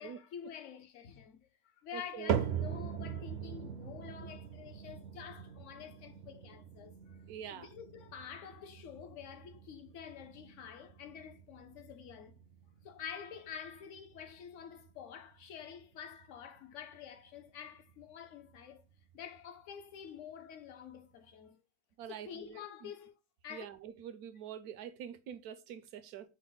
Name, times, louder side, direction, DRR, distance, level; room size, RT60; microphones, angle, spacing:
voice 1, 0.0-1.5 1.8-7.2 7.5-12.4 12.8-18.8 19.1-21.6 22.1-23.1 23.4-23.7, left 8 dB, 60° left, 0.9 m, -48 dB
voice 2, 1.9-2.6 7.3-7.7 22.0-22.9 23.5-26.3, right 9 dB, 85° right, 1.1 m, -46 dB
sound 1, 2.3-18.6 18.9-19.4 20.0-20.1 21.0-21.1, right 8 dB, 65° right, 0.6 m, -42 dB
5.3 x 2.1 x 3.8 m
omnidirectional pair, 1.6 m